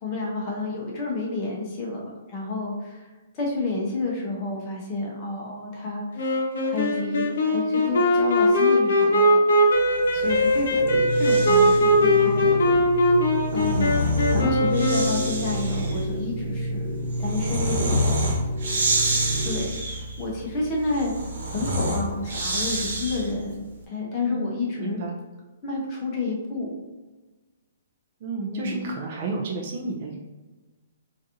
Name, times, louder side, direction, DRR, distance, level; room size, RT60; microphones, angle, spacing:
voice 1, 0.0-3.1 3.3-9.4 9.7-9.8 10.1-10.8 11.1-12.6 13.5-18.3 19.4-21.1 21.5-25.0 25.6-26.7 28.5-28.8, left 3 dB, 20° left, -3 dB, 0.7 m, -30 dB
Wind instrument woodwind instrument, 6.2-15.6, equal, 60° left, 0.7 m, -20 dB
Breathing, 10.0-12.0 13.2-23.5, equal, 70° right, 1.0 m, -28 dB
sound 1, 10.8-19.6, right 1 dB, ahead, 1.5 m, -29 dB
voice 2, 24.8-25.2 28.2-30.2, right 3 dB, 30° right, 1 dB, 0.4 m, -31 dB
3.9 x 2.5 x 2.7 m, 1.2 s
hypercardioid pair, 175°, 0 cm